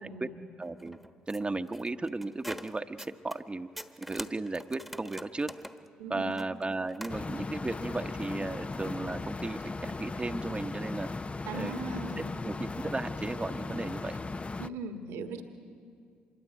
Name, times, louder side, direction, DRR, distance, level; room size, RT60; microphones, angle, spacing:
voice 1, 0.0-0.4 6.0-6.3 11.5-12.3 14.6-15.4, right 3 dB, 75° right, 5 dB, 1.7 m, -39 dB
sound 1, 0.6-3.4 3.7-7.2, equal, ahead, 1.3 m, -45 dB
voice 2, 0.6-1.0 1.3-3.7 4.0-5.5 6.1-11.1 11.5-11.7 12.2-14.2, right 2 dB, 20° right, 6 dB, 1.0 m, -35 dB
Outdoor Industrial Fan, 7.1-14.7, left 3 dB, 25° left, 0.6 m, -37 dB
25.5 x 22.0 x 9.2 m, 2.3 s
hypercardioid pair, 50°, 5 cm